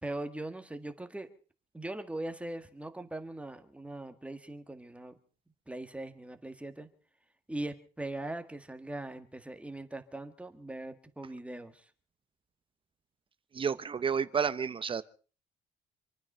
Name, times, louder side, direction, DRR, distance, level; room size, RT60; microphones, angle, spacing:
voice 1, 0.0-1.3 1.7-5.2 5.7-6.9 7.5-11.9, right 1 dB, 5° right, 1.6 m, -40 dB
voice 2, 13.5-15.0, right 6 dB, 30° right, 0.8 m, -30 dB
27.0 x 9.6 x 5.5 m
cardioid pair, 110°, 17 cm